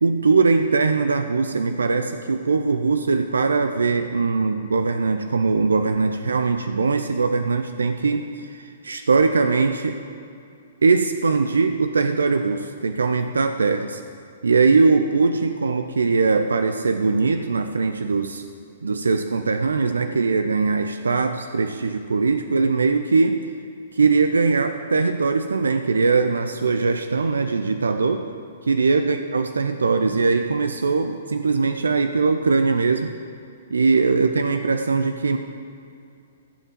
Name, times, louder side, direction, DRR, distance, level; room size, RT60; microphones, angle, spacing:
voice 1, 0.0-10.0 10.8-14.0 14.4-18.4 18.8-23.4 23.9-28.2 28.6-33.1 33.7-35.4, right 4 dB, 80° right, 8 dB, 0.5 m, -21 dB
15.0 x 5.7 x 7.5 m, 2.5 s
hypercardioid pair, 120°, 0 cm